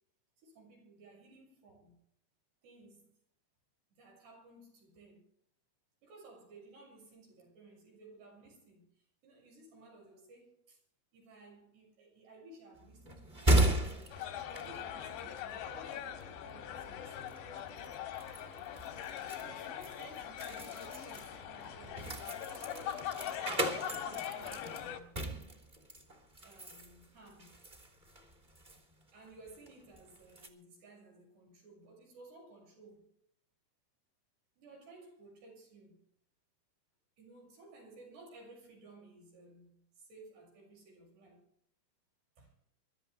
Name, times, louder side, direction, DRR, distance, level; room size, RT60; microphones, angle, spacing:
voice 1, 0.4-2.0 2.6-3.1 4.0-5.2 6.0-10.8 11.1-14.2 14.6-17.5 19.3-25.2 26.4-27.7 29.1-33.1 34.6-36.0 37.2-41.5 42.4-42.5, right 2 dB, 80° right, 8.7 m, -57 dB
sound 1, 12.8-30.5, right 1 dB, 15° right, 2.2 m, -36 dB
sound 2, 14.1-25.0, left 9 dB, 90° left, 4.0 m, -42 dB
25.0 x 13.0 x 3.4 m
omnidirectional pair, 4.7 m